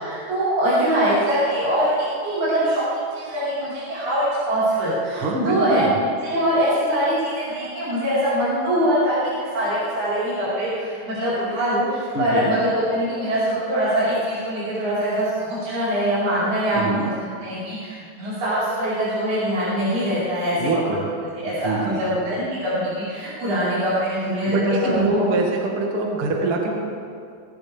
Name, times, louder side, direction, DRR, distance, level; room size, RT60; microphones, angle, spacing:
voice 1, 0.0-1.9 2.2-2.8 3.1-5.8 6.2-17.1 17.4-20.6 20.9-21.0 21.3-25.3, equal, 40° right, -12 dB, 5.4 m, -23 dB
voice 2, 5.1-5.9 12.1-12.6 16.7-17.1 20.6-21.0 21.6-22.0 24.5-26.7, right 2 dB, 55° right, -1 dB, 1.6 m, -24 dB
21.5 x 15.5 x 3.5 m, 2.3 s
omnidirectional pair, 5.9 m